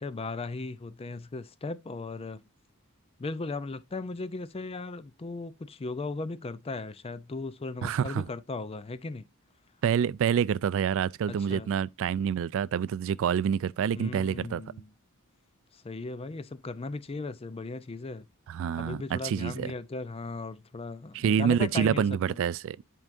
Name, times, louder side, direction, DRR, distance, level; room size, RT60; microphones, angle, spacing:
voice 1, 0.0-2.4 3.2-9.3 11.3-11.7 13.9-14.9 15.7-18.3 18.8-22.2, left 3 dB, 25° left, 0.5 m, -37 dB
voice 2, 7.8-8.2 9.8-14.6 18.5-19.7 21.1-22.8, right 8 dB, 65° right, 0.3 m, -27 dB
11.0 x 4.7 x 2.5 m
head